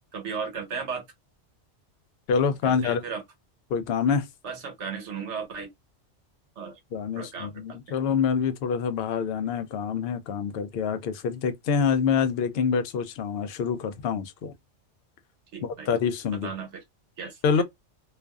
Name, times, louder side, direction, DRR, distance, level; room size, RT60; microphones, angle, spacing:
voice 1, 0.1-1.0 2.6-3.2 4.4-5.7 6.6-6.8 7.1-7.8 15.5-15.9 16.4-16.8 17.2-17.6, right 5 dB, 75° right, 1.2 m, -35 dB
voice 2, 2.3-3.0 3.7-4.3 6.9-14.5 15.6-16.5 17.4-17.6, left 6 dB, 65° left, 0.7 m, -26 dB
2.5 x 2.3 x 2.2 m
omnidirectional pair, 1.2 m